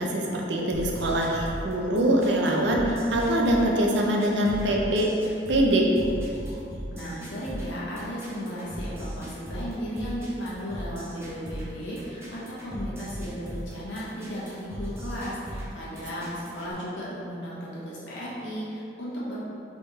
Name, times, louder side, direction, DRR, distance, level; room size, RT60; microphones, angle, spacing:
voice 1, 0.0-5.1 5.5-5.9, right 1 dB, 70° right, -1 dB, 0.6 m, -23 dB
sound 1, 0.7-16.7, equal, 15° right, 0.8 m, -38 dB
voice 2, 6.9-19.4, equal, 80° left, -8 dB, 1.3 m, -35 dB
3.7 x 3.5 x 4.1 m, 2.7 s
head